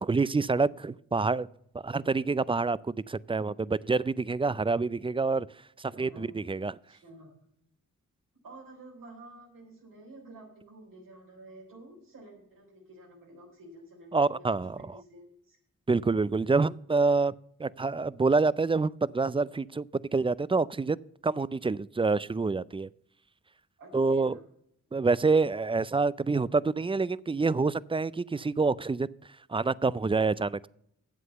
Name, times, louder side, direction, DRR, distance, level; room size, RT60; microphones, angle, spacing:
voice 1, 0.0-1.5 1.7-5.5 5.8-6.7 14.1-15.0 15.9-17.3 17.6-19.9 20.1-21.0 21.2-22.9 23.9-24.4 24.9-29.1 29.5-30.7, right 4 dB, 15° right, 21 dB, 0.4 m, -27 dB
voice 2, 5.9-7.4 8.4-14.5 14.8-15.6 23.8-24.4, right 1 dB, 85° right, -1 dB, 3.6 m, -51 dB
8.2 x 7.8 x 6.7 m, 0.72 s
supercardioid pair, 40°, 32 cm